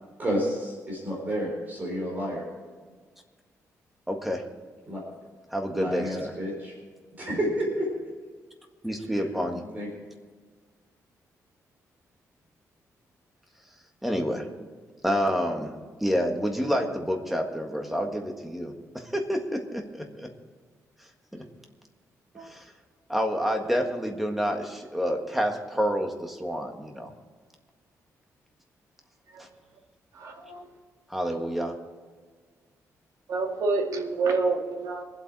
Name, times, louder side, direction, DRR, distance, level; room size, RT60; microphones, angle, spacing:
voice 1, 0.2-2.4 4.9-5.0 5.7-6.7 7.2-7.9 9.1-9.2 9.7-9.9, equal, 30° right, -2 dB, 4.1 m, -30 dB
voice 2, 4.1-4.4 5.5-6.3 8.8-9.6 14.0-14.5 15.0-15.7 16.0-20.3 21.3-21.4 22.4-22.7 23.1-27.1 31.1-31.7, equal, 5° right, 3 dB, 1.6 m, -28 dB
voice 3, 30.2-30.7 33.3-35.0, right 3 dB, 70° right, 1 dB, 2.2 m, -27 dB
23.0 x 8.1 x 4.8 m, 1.5 s
wide cardioid pair, 160°, 6 cm